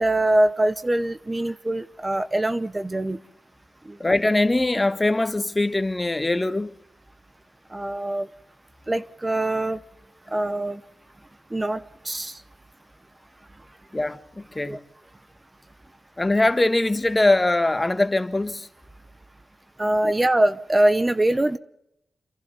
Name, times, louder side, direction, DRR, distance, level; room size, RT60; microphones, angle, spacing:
voice 1, 0.0-3.2 3.9-4.0 7.7-8.3 8.9-9.8 10.3-10.8 11.5-12.4 14.6-14.8 19.8-21.6, right 1 dB, 20° right, 0.9 m, -23 dB
voice 2, 4.0-6.7 13.9-14.8 16.2-18.7 20.0-20.1, left 2 dB, 20° left, 1.4 m, -22 dB
29.0 x 12.0 x 7.7 m
cardioid pair, 60°, 0 cm